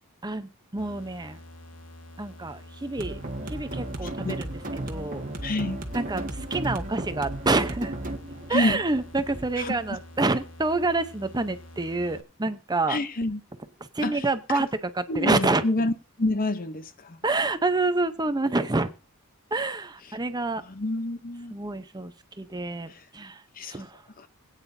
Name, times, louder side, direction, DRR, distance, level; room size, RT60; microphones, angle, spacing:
voice 1, 0.2-1.4 2.2-3.2 3.5-4.6 4.9-5.2 5.9-7.9 8.5-13.0 13.8-15.6 17.2-18.9 19.5-20.6 21.5-23.4 23.7-24.0, right 3 dB, 20° right, 0.7 m, -27 dB
sound 1, 0.8-12.2, left 1 dB, 90° left, 1.5 m, -47 dB
sound 2, 3.0-9.9, right 1 dB, 40° right, 1.5 m, -35 dB
voice 2, 5.4-5.8 8.5-8.8 9.6-9.7 12.9-13.4 14.0-14.2 14.5-14.6 15.1-15.9 16.2-17.2 20.7-21.5 23.6-23.8, left 2 dB, 40° left, 0.8 m, -27 dB
21.0 x 9.1 x 2.7 m
head